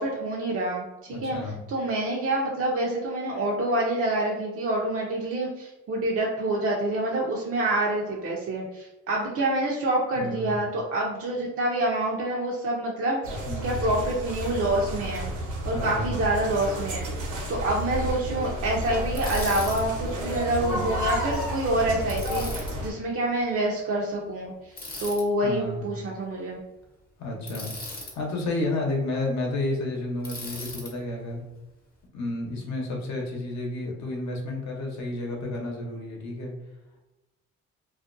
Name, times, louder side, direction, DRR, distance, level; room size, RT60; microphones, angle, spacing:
voice 1, 0.0-1.4 1.7-15.3 15.6-24.7 25.0-26.6, right 1 dB, 50° right, -3 dB, 0.5 m, -27 dB
voice 2, 1.1-1.6 10.2-10.5 13.5-13.8 15.7-16.0 25.4-25.8 27.2-27.7 28.1-31.4 32.1-36.5, left 2 dB, 65° left, 0 dB, 0.8 m, -31 dB
sound 1, 13.2-22.9, right 1 dB, 75° right, 0.9 m, -32 dB
Crying sobbing, 14.1-14.2 16.7-16.9 18.5-18.6 19.1-19.2 19.4-19.5 20.5-21.6 22.6-22.9 23.5-23.6, left 3 dB, ahead, 0.5 m, -34 dB
Bicycle, 19.2-19.8 22.1-22.7 24.8-25.2 27.5-28.1 30.2-30.9, left 2 dB, 30° left, 0.7 m, -38 dB
2.4 x 2.2 x 2.5 m, 1.0 s
cardioid pair, 90°, 30 cm